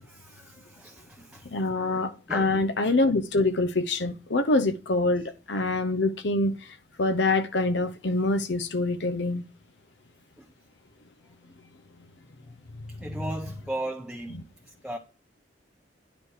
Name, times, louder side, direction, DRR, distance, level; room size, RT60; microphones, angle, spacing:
voice 1, 0.0-1.6 2.3-2.7 5.1-5.3 10.4-10.5 11.4-11.7 12.9-15.0, right 1 dB, 5° right, 0.8 m, -38 dB
voice 2, 1.4-9.4 12.7-12.8, left 2 dB, 65° left, 0.8 m, -25 dB
9.9 x 5.1 x 4.8 m
head